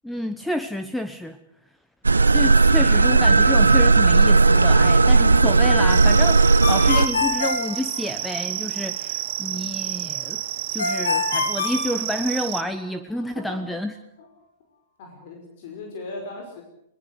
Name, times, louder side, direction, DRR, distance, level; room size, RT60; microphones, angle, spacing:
voice 1, 0.0-1.4 2.3-10.4 10.7-13.9, left 1 dB, 5° left, 9 dB, 1.2 m, -29 dB
sound 1, 2.0-7.1, right 3 dB, 85° right, 1.0 m, -16 dB
sound 2, 5.9-12.6, right 14 dB, 55° right, 1.2 m, -30 dB
Ringtone, 6.6-8.5 10.8-12.7, left 4 dB, 80° left, 5.3 m, -26 dB
voice 2, 13.2-13.7 14.2-14.3 15.0-16.6, left 2 dB, 55° left, 3 dB, 5.4 m, -38 dB
22.0 x 20.5 x 8.2 m, 0.78 s
figure-of-eight pair, 105°, 0 cm